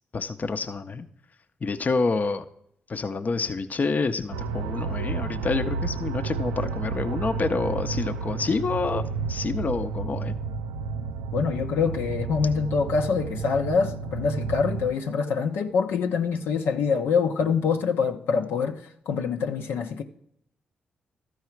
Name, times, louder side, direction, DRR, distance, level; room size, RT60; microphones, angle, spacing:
voice 1, 0.1-1.1 1.6-2.4 2.9-9.0 9.3-10.3, left 4 dB, 45° left, 0.7 m, -28 dB
sound 1, 4.3-14.9, right 5 dB, 90° right, 0.3 m, -31 dB
voice 2, 11.3-18.8 19.1-20.0, left 5 dB, 75° left, 0.7 m, -25 dB
13.0 x 4.8 x 4.5 m
hypercardioid pair, 40°, 4 cm